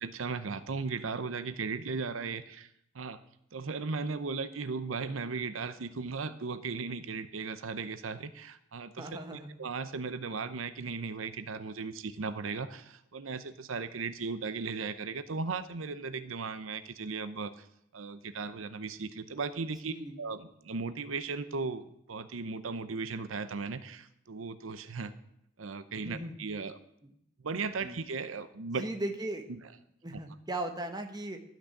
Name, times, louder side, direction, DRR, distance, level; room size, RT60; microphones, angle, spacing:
voice 1, 0.0-2.7 2.9-3.2 3.5-17.7 17.9-25.1 25.6-26.8 27.4-28.8 29.5-29.6 30.1-30.2, right 4 dB, 85° right, 12 dB, 0.7 m, -37 dB
voice 2, 9.0-9.5 19.9-20.2 26.0-26.3 27.8-28.0 28.8-29.4 30.0-31.4, right 1 dB, 20° right, 5 dB, 1.1 m, -37 dB
13.0 x 6.2 x 8.3 m, 0.76 s
head